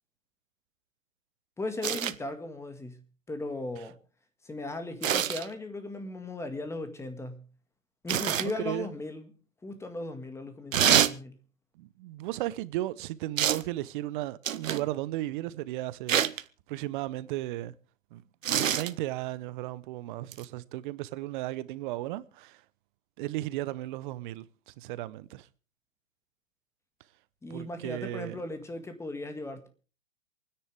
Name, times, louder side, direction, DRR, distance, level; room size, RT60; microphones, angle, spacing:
voice 1, 1.6-3.0 3.3-4.0 4.4-7.4 8.0-9.3 9.6-11.4 27.4-29.7, left 2 dB, 5° left, 1.8 m, -37 dB
sound 1, 1.8-2.2 5.0-5.5 8.1-8.5 10.7-11.2 13.4-13.7 14.4-14.9 16.1-16.4 18.4-18.9 20.3-20.4, right 10 dB, 80° right, 1.0 m, -26 dB
voice 2, 8.4-8.9 11.7-17.7 18.1-18.2 18.5-22.6 23.2-25.5 27.5-28.4, right 16 dB, 40° right, 0.8 m, -35 dB
28.0 x 10.0 x 3.4 m
hypercardioid pair, 130°, 39 cm